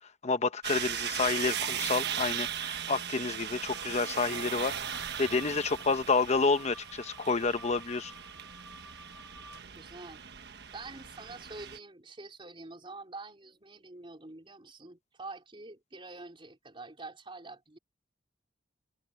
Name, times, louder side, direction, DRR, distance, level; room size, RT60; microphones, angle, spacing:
voice 1, 0.2-8.1, left 4 dB, 40° left, 1.0 m, -29 dB
sound 1, 0.6-11.8, right 9 dB, 65° right, 1.4 m, -38 dB
sound 2, 3.6-9.6, left 1 dB, ahead, 3.2 m, -53 dB
voice 2, 9.7-10.2 10.7-17.8, right 3 dB, 30° right, 3.4 m, -47 dB
head